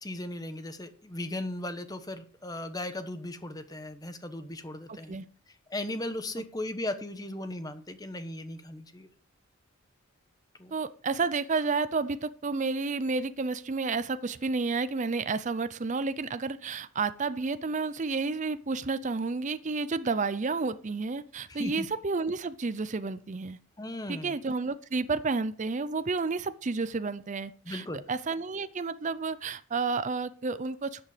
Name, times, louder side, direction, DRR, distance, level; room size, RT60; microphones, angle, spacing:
voice 1, 0.0-5.2 5.7-9.1 10.6-10.7 21.5-21.9 23.8-24.4 27.6-28.0, left 1 dB, 15° left, 10 dB, 1.1 m, -37 dB
voice 2, 4.9-5.2 10.7-23.6 24.1-31.0, right 4 dB, 35° right, 13 dB, 0.5 m, -31 dB
13.0 x 8.2 x 5.0 m, 0.42 s
head